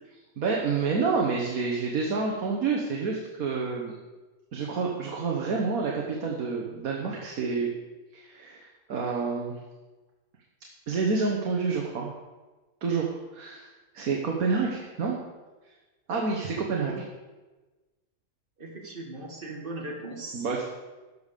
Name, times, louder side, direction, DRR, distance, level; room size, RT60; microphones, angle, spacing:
voice 1, 0.4-3.9 4.5-7.7 8.1-9.5 10.9-12.1 12.8-13.7 13.9-15.2 16.1-16.9 20.3-20.6, right 4 dB, 75° right, -1 dB, 1.7 m, -28 dB
voice 2, 18.6-20.5, right 2 dB, 35° right, 1 dB, 1.9 m, -38 dB
13.5 x 5.4 x 6.7 m, 1.2 s
omnidirectional pair, 1.5 m